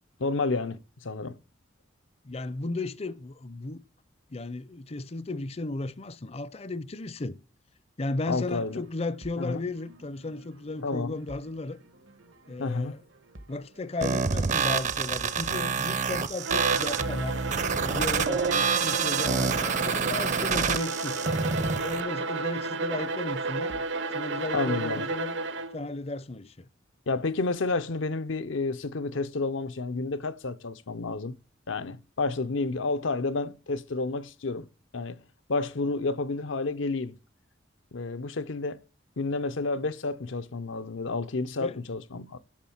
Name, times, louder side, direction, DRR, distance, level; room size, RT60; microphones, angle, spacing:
voice 1, 0.2-1.4 8.3-8.8 9.4-9.6 10.8-11.2 12.6-13.0 24.5-25.0 27.1-31.3 31.7-34.7 34.9-35.2 35.5-37.2 37.9-38.8 39.2-42.4, left 3 dB, 80° left, 0.7 m, -30 dB
voice 2, 2.2-3.8 4.3-7.4 8.0-11.8 12.5-13.0 13.5-21.2 21.8-23.8 24.1-25.4 25.7-26.7 41.6-41.8, left 2 dB, 30° left, 0.5 m, -35 dB
sound 1, 8.0-23.8, right 1 dB, 85° right, 1.5 m, -52 dB
sound 2, 14.0-22.0, right 5 dB, 40° right, 0.6 m, -27 dB
Bowed string instrument, 16.4-25.9, right 3 dB, 65° right, 0.8 m, -32 dB
9.9 x 7.4 x 7.1 m
head